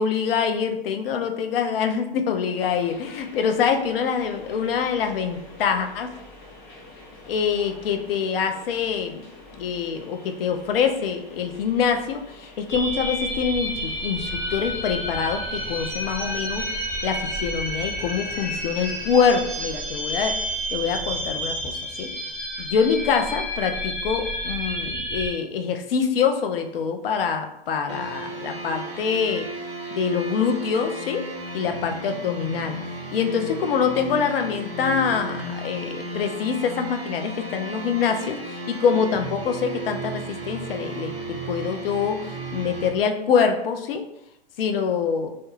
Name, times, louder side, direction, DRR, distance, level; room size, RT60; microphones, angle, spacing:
voice 1, 0.0-6.1 7.3-9.3 9.5-20.3 20.7-22.1 22.6-29.5 29.9-31.2 31.5-32.8 33.1-42.2 42.5-44.0 44.6-45.3, left 6 dB, 70° left, 5 dB, 0.5 m, -25 dB
sound 1, 2.6-19.8, left 2 dB, 55° left, 0.9 m, -46 dB
sound 2, 12.7-25.3, equal, 20° left, 1.3 m, -30 dB
sound 3, 27.9-42.9, right 2 dB, 25° right, 0.6 m, -34 dB
2.3 x 2.2 x 3.0 m, 0.81 s
hypercardioid pair, 125°, 29 cm